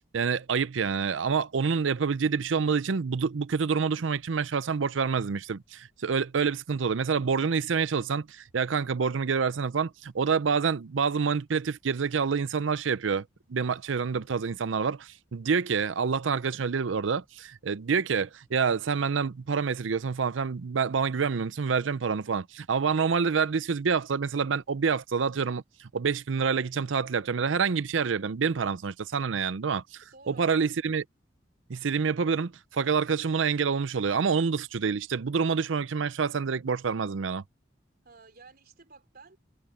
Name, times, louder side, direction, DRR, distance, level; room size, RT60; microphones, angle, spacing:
voice 1, 0.1-31.0 31.7-37.4, right 5 dB, 80° right, 0.6 m, -27 dB
voice 2, 30.0-30.7 38.0-39.4, right 4 dB, 55° right, 4.0 m, -53 dB
head